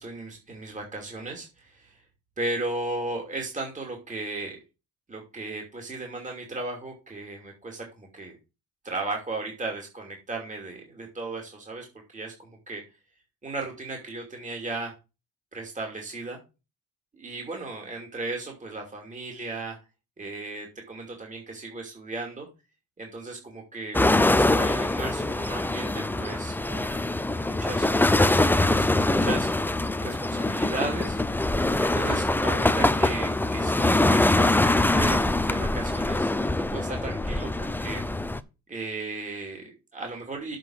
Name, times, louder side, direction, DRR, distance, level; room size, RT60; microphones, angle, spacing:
voice 1, 0.0-2.0 2.4-4.6 5.1-8.4 8.8-11.9 12.1-12.8 13.4-14.9 15.5-16.4 17.1-19.8 20.2-22.5 23.0-24.0 24.3-27.1 27.4-29.5 30.0-31.2 31.8-35.2 35.5-38.0 38.7-40.6, right 2 dB, 25° right, 1 dB, 2.8 m, -35 dB
Red Freight Train Pass Fast, 23.9-38.4, left 2 dB, 5° left, 0.6 m, -23 dB
7.7 x 4.8 x 6.5 m, 0.29 s
cardioid pair, 90°, 30 cm